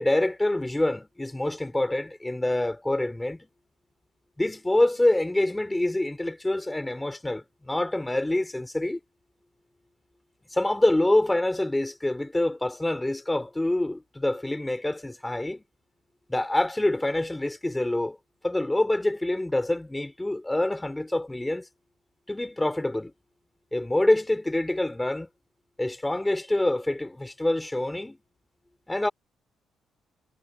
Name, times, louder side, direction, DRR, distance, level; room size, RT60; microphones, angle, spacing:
voice 1, 0.0-3.5 4.4-9.0 10.5-15.6 16.3-18.2 18.4-21.7 22.3-23.1 23.7-25.3 25.8-28.2 28.9-29.1, left 1 dB, 10° left, 4.1 m, -26 dB
cardioid pair, 90°, 0 cm